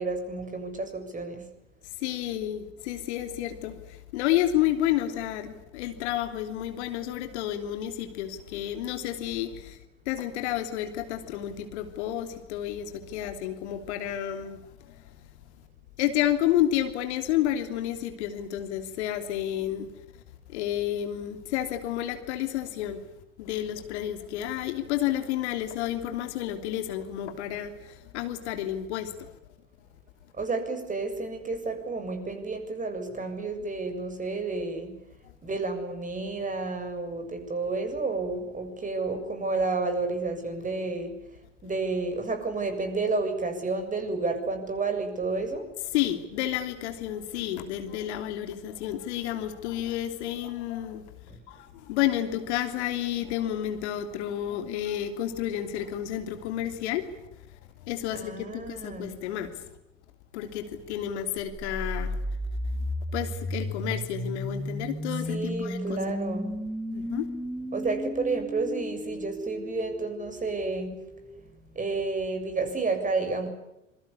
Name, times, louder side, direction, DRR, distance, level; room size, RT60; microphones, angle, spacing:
voice 1, 0.0-1.4 30.4-34.9 35.4-41.2 41.6-45.6 51.3-51.4 58.1-59.2 65.3-66.6 67.7-70.9 71.7-73.5, right 3 dB, 20° right, 7 dB, 7.2 m, -31 dB
voice 2, 2.0-9.8 10.0-14.6 14.9-15.0 16.0-19.9 20.5-23.0 23.4-29.3 45.9-51.1 51.5-57.3 57.9-59.6 60.3-62.1 63.1-66.0 66.9-67.3, left 12 dB, 60° left, 8 dB, 3.1 m, -30 dB
sound 1, 61.5-71.4, equal, ahead, 2.1 m, -34 dB
26.5 x 23.5 x 8.4 m, 0.88 s
figure-of-eight pair, 80°, 38 cm